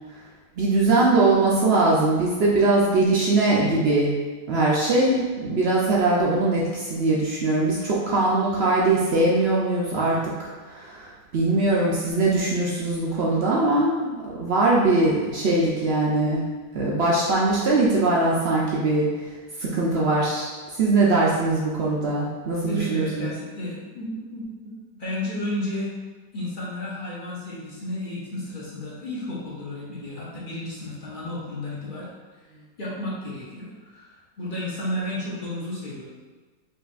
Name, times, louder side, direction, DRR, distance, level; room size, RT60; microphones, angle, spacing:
voice 1, 0.6-4.1 4.5-16.5 16.7-19.1 19.6-23.3, right 2 dB, 75° right, -5 dB, 0.5 m, -21 dB
voice 2, 22.7-25.9 26.3-32.1 32.4-32.5 32.8-36.0, left 1 dB, 40° left, -7 dB, 0.9 m, -32 dB
5.2 x 2.6 x 2.4 m, 1.4 s
omnidirectional pair, 1.7 m